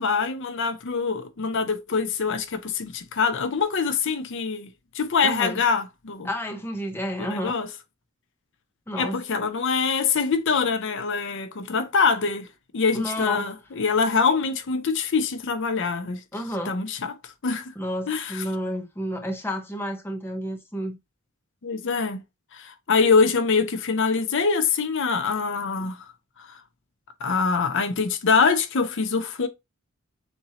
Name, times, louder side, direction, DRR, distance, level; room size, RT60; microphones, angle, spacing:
voice 1, 0.0-4.7 4.9-6.3 7.2-7.7 9.0-12.5 12.7-16.2 16.7-17.7 18.1-18.4 21.6-22.2 22.5-26.0 26.4-26.6 27.2-29.5, left 5 dB, 60° left, 0.6 m, -24 dB
voice 2, 5.2-5.6 6.2-7.5 8.9-9.2 12.9-13.5 16.3-16.8 17.8-21.0 25.8-25.9, equal, 10° left, 0.8 m, -31 dB
7.0 x 2.7 x 2.8 m
head